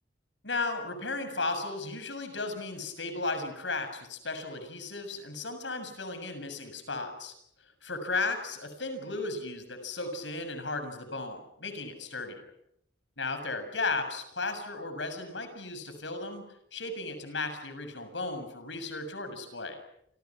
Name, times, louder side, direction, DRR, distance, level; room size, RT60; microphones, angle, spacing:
voice 1, 0.4-7.3 7.8-12.4 13.2-16.5 16.7-19.8, left 3 dB, 90° left, 8 dB, 6.9 m, -35 dB
29.0 x 28.0 x 6.1 m, 0.74 s
head